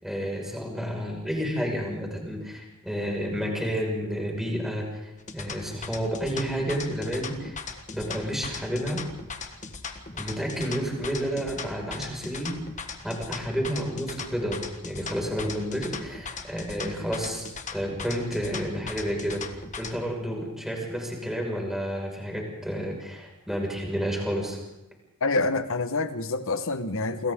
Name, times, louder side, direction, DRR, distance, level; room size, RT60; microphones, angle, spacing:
voice 1, 0.0-7.6 7.9-9.0 10.1-12.6 13.0-17.5 17.7-19.4 19.8-24.6, equal, ahead, 5.8 m, -30 dB
sound 1, 5.2-20.0, left 5 dB, 35° left, 1.6 m, -39 dB
voice 2, 25.2-27.3, left 3 dB, 65° left, 1.4 m, -27 dB
28.5 x 26.0 x 3.9 m
head